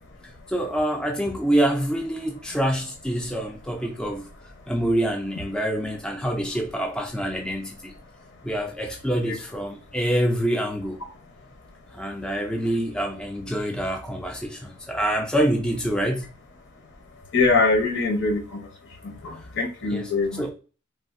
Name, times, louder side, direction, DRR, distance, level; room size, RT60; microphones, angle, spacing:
voice 1, 0.5-4.3 4.7-7.9 8.4-11.0 11.9-16.3 19.9-20.1 20.4-20.5, right 1 dB, 5° left, 0.3 m, -26 dB
voice 2, 17.3-18.6 19.0-20.4, left 3 dB, 60° left, 0.7 m, -23 dB
3.3 x 2.3 x 2.5 m
head